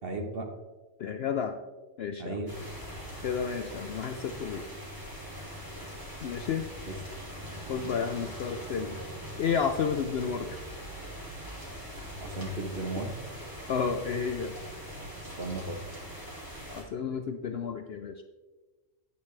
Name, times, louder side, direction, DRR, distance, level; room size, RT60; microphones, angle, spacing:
voice 1, 0.0-0.5 2.2-2.5 6.9-7.3 12.2-13.2 15.4-16.0, right 2 dB, 45° right, 3 dB, 1.3 m, -36 dB
voice 2, 1.0-1.6 2.0-2.4 3.2-4.7 6.2-6.7 7.7-9.0 9.4-10.5 13.7-14.5 16.7-18.2, left 6 dB, 65° left, 7 dB, 0.6 m, -31 dB
sound 1, 2.5-16.8, equal, 15° right, 2.6 m, -42 dB
10.0 x 8.4 x 3.3 m, 1.3 s
omnidirectional pair, 1.4 m